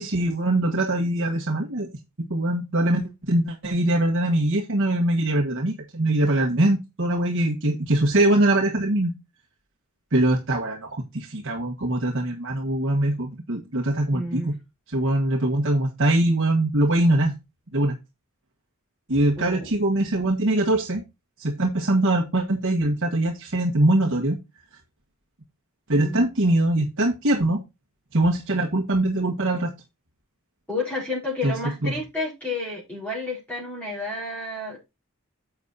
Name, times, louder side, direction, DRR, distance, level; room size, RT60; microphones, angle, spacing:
voice 1, 0.0-1.9 2.3-9.1 10.1-14.5 14.9-17.3 17.7-17.9 19.1-21.0 21.4-24.4 25.9-27.6 28.1-29.7 31.4-31.5 31.8-31.9, right 1 dB, 60° right, 1.6 m, -22 dB
voice 2, 14.1-14.5 19.4-19.7 25.9-26.3 30.7-34.9, left 2 dB, 10° left, 4.8 m, -31 dB
10.5 x 7.4 x 2.7 m
head